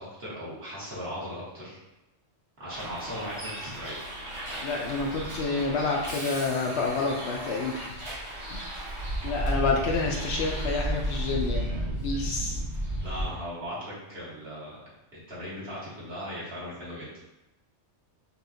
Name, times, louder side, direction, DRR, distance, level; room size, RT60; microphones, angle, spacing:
voice 1, 0.0-1.8 2.6-4.1 13.0-14.7 15.1-17.1, equal, 55° right, -8 dB, 1.6 m, -38 dB
Bus, 2.7-13.2, right 1 dB, 30° right, 0.8 m, -33 dB
voice 2, 4.6-8.0 8.5-8.6 9.2-11.7 12.0-12.6, left 3 dB, 65° left, 0 dB, 0.8 m, -28 dB
5.4 x 2.4 x 2.6 m, 0.94 s
omnidirectional pair, 1.3 m